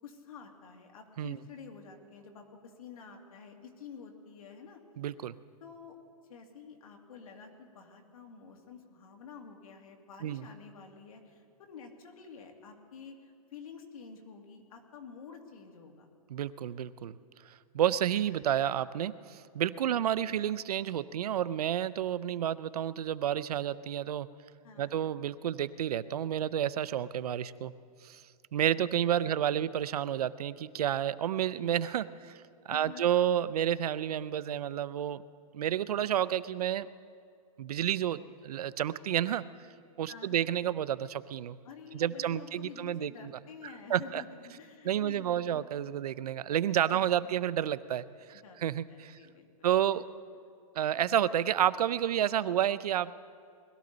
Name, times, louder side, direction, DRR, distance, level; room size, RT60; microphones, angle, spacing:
voice 1, 0.0-4.8 5.6-6.0 6.3-16.1 19.8-20.1 24.6-25.0 29.2-29.4 32.7-33.1 40.1-40.5 41.6-45.7 46.9-47.3 48.4-49.7, left 6 dB, 70° left, 3 dB, 2.3 m, -49 dB
voice 2, 5.0-5.3 10.2-10.5 16.3-17.2 17.7-24.3 24.8-27.7 28.0-28.2 28.5-32.4 32.7-35.2 35.5-36.9 37.6-39.4 40.0-41.6 41.9-43.1 43.9-44.2 44.8-49.2 49.6-50.0 50.8-53.1, right 10 dB, 90° right, 17 dB, 0.5 m, -30 dB
20.5 x 13.5 x 4.0 m, 2.3 s
hypercardioid pair, 155°, 19 cm